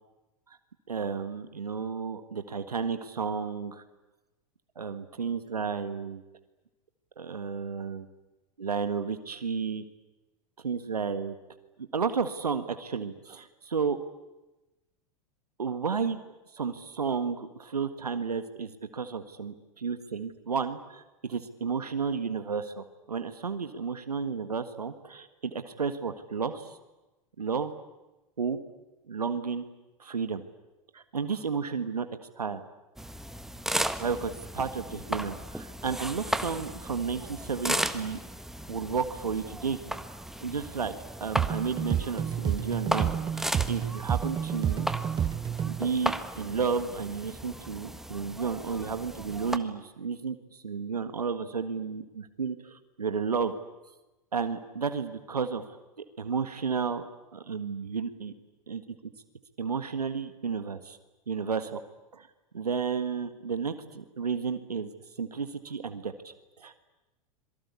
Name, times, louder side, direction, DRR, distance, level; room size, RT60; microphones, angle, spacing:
voice 1, 0.9-3.8 4.7-6.2 7.2-8.1 8.6-9.8 10.6-11.3 11.9-14.0 15.6-16.2 16.5-26.8 27.4-27.7 28.4-28.6 29.1-29.6 30.0-30.4 30.9-32.6 34.0-38.2 38.7-39.8 40.4-40.9 41.2-44.9 45.6-53.5 54.3-57.0 57.3-58.3 58.7-58.9 59.6-61.0 61.3-61.8 62.1-62.3 62.5-64.9 65.2-66.8, right 5 dB, 90° right, 10 dB, 1.8 m, -32 dB
sound 1, 33.0-49.6, right 1 dB, ahead, 1.6 m, -36 dB
sound 2, 41.4-45.9, right 8 dB, 25° right, 1.1 m, -30 dB
26.5 x 23.5 x 8.4 m, 1.0 s
hypercardioid pair, 95°, 19 cm